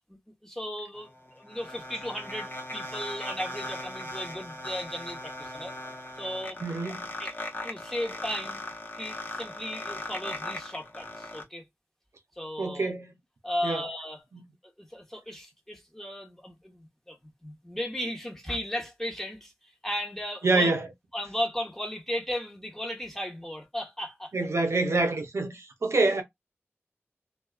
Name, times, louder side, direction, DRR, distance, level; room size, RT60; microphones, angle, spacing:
voice 1, 0.1-5.7 6.2-6.6 7.2-7.3 7.6-8.6 9.0-11.7 12.3-12.9 13.4-14.2 14.8-20.7 21.1-24.3, equal, 5° left, 1.0 m, -35 dB
sound 1, 1.0-11.4, left 1 dB, 45° left, 0.8 m, -39 dB
voice 2, 6.6-7.1 12.6-13.1 13.6-13.8 14.3-14.4 20.4-20.9 24.3-26.2, right 3 dB, 85° right, 0.6 m, -26 dB
2.4 x 2.2 x 2.3 m
wide cardioid pair, 50°, 5 cm